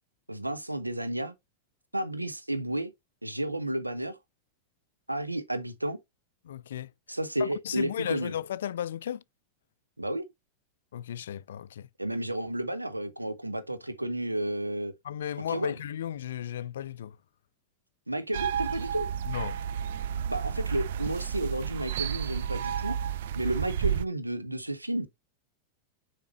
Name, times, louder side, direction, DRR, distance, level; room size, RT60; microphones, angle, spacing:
voice 1, 0.3-1.3 1.9-2.9 3.2-4.2 5.1-6.0 7.1-8.3 10.0-10.2 12.0-14.9 15.5-15.7 18.1-19.1 20.3-22.9 23.4-25.1, right 1 dB, 85° right, 0.9 m, -32 dB
voice 2, 6.4-9.2 10.9-11.9 15.0-17.2 19.3-19.6, left 10 dB, 60° left, 0.3 m, -35 dB
sound 1, 18.3-24.1, right 9 dB, 55° right, 0.4 m, -31 dB
7.0 x 5.0 x 2.9 m
figure-of-eight pair, 90°, 0 cm